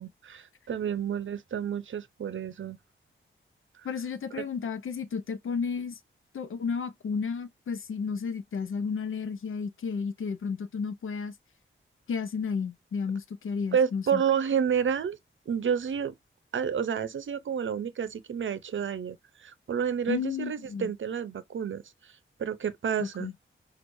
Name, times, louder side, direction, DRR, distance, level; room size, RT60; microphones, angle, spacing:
voice 1, 0.0-2.8 4.3-4.4 13.7-15.2 15.5-16.1 16.5-21.8 22.4-23.3, right 7 dB, 65° right, 0.6 m, -30 dB
voice 2, 3.8-6.0 6.3-11.3 12.1-14.2 20.1-20.9 23.0-23.3, left 5 dB, 75° left, 0.7 m, -32 dB
6.2 x 2.5 x 2.6 m
wide cardioid pair, 135°, 21 cm